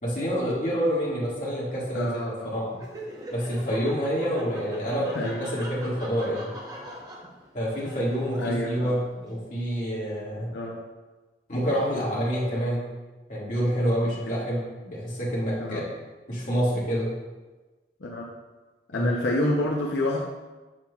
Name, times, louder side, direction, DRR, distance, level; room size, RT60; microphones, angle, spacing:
voice 1, 0.0-2.8 3.3-6.5 7.5-10.5 11.5-12.9 13.3-15.8 16.3-17.1 18.9-19.1, equal, 45° left, -7 dB, 2.0 m, -27 dB
voice 2, 1.9-2.5 5.1-5.4 8.4-8.9 10.5-10.8 14.3-14.4 15.6-15.9 18.0-18.3 18.9-20.3, left 1 dB, 85° left, -2 dB, 0.7 m, -28 dB
Laughter, 2.7-9.3, right 1 dB, 20° right, 0.7 m, -42 dB
7.4 x 5.8 x 2.4 m, 1.2 s
head